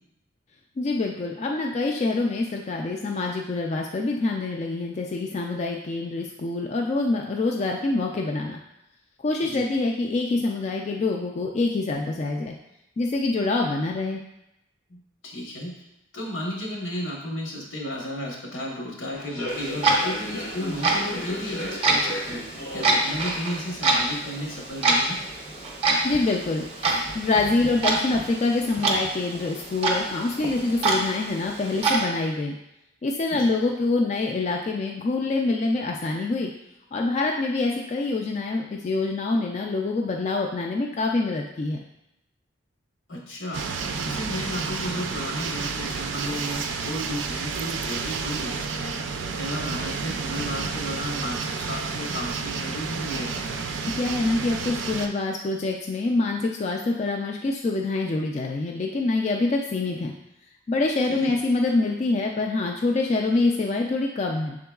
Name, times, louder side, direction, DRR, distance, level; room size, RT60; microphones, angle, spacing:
voice 1, 0.8-8.6 9.2-12.6 13.0-14.2 26.0-32.5 33.0-36.5 36.9-41.8 54.0-60.1 60.7-64.6, left 3 dB, 35° left, 1 dB, 0.3 m, -25 dB
voice 2, 15.2-15.7 16.1-22.4 22.7-25.2 33.3-33.5 43.1-43.6 44.0-48.9 49.3-53.7 61.1-61.3, equal, 85° left, -2 dB, 1.2 m, -33 dB
Human voice / Subway metro underground, 19.1-24.7, left 1 dB, 65° left, 0.9 m, -36 dB
Clock, 19.5-32.0, right 2 dB, 30° right, 0.6 m, -27 dB
sound 1, 43.5-55.1, right 5 dB, 75° right, 0.4 m, -30 dB
6.0 x 3.7 x 2.3 m, 0.88 s
head